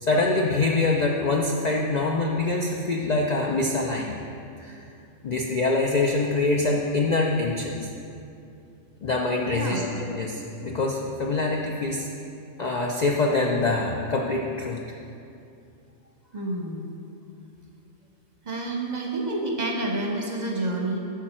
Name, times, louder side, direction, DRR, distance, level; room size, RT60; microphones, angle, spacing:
voice 1, 0.0-4.2 4.6-4.9 5.2-7.9 9.0-12.1 12.6-14.8, left 3 dB, 55° left, 0 dB, 0.5 m, -25 dB
voice 2, 9.5-9.9 16.3-16.9 18.4-21.0, right 2 dB, 40° right, 0 dB, 0.8 m, -29 dB
8.9 x 5.7 x 4.3 m, 2.6 s
omnidirectional pair, 1.3 m